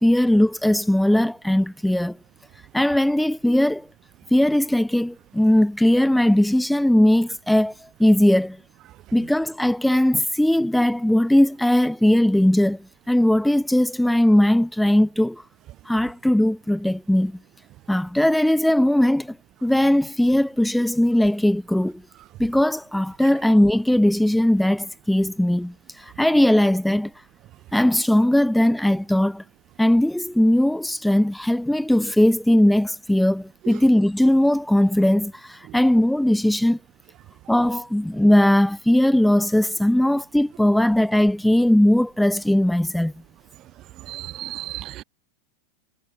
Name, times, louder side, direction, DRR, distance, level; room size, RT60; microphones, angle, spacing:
voice 1, 0.0-2.2 2.7-3.9 4.3-8.6 9.1-15.4 15.8-17.4 17.9-22.0 22.4-27.1 27.7-29.4 29.8-36.8 37.5-43.1, left 1 dB, 5° left, 1.1 m, -19 dB
voice 2, 44.1-45.0, right 15 dB, 40° right, 0.4 m, -34 dB
hypercardioid pair, 100°, 0 cm